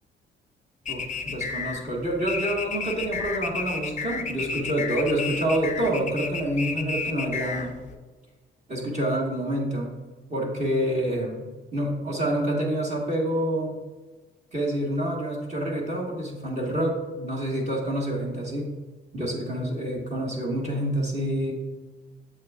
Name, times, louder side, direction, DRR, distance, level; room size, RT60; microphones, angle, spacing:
sound 1, 0.9-7.9, left 5 dB, 35° left, 0.5 m, -32 dB
voice 1, 0.9-7.7 8.7-9.9 10.3-13.8 14.5-18.7 19.1-21.5, right 1 dB, 35° right, -2 dB, 1.7 m, -27 dB
7.5 x 6.2 x 2.5 m, 1.3 s
cardioid pair, 90°, 20 cm